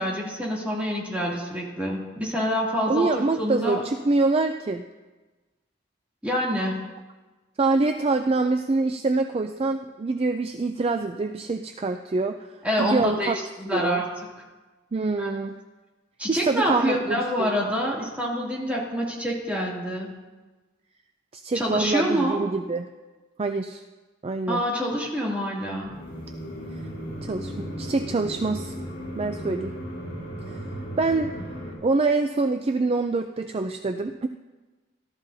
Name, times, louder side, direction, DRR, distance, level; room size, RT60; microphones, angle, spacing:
voice 1, 0.0-3.8 6.2-6.9 12.6-14.1 15.2-15.3 16.2-20.2 21.5-22.4 24.5-26.0, equal, 10° right, -4 dB, 2.6 m, -26 dB
voice 2, 2.9-4.8 7.6-12.5 12.8-13.4 13.7-14.0 14.9-15.6 16.3-17.5 21.3-22.9 23.4-23.8 24.2-24.6 27.2-28.7 29.2-29.7 31.0-31.3 31.8-34.3, right 3 dB, 30° right, 6 dB, 0.4 m, -25 dB
sound 1, 25.8-31.7, equal, 70° left, 4.9 m, -36 dB
17.5 x 12.5 x 2.7 m, 1.2 s
head